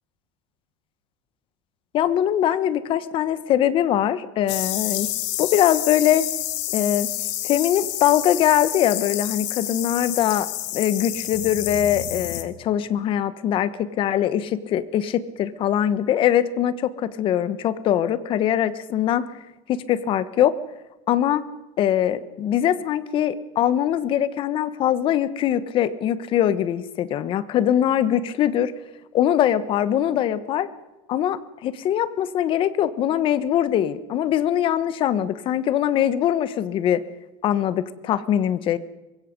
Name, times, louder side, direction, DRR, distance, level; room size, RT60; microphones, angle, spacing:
voice 1, 1.9-5.1 5.4-6.3 6.7-7.1 7.4-10.5 10.7-19.3 19.7-20.5 21.1-21.4 21.8-28.7 29.1-30.7 31.1-37.0 37.4-38.8, left 10 dB, 35° left, 14 dB, 1.2 m, -22 dB
sound 1, 4.5-12.4, left 15 dB, 80° left, 2.2 m, -29 dB
24.5 x 21.5 x 5.3 m, 1.0 s
cardioid pair, 160°, 15 cm